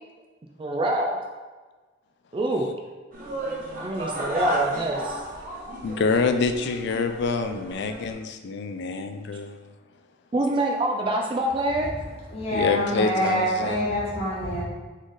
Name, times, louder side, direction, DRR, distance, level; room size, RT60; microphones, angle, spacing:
voice 1, 0.6-1.2 2.3-2.7 3.8-5.2 9.3-9.4 10.3-11.9, right 1 dB, 25° right, 2 dB, 0.3 m, -26 dB
sound 1, 3.1-8.1, right 1 dB, 45° right, 0.9 m, -32 dB
voice 2, 5.8-9.6 12.5-13.8, left 4 dB, 60° left, 8 dB, 0.4 m, -26 dB
voice 3, 12.3-14.6, left 1 dB, 30° left, -7 dB, 1.4 m, -26 dB
4.1 x 3.2 x 3.9 m, 1.3 s
head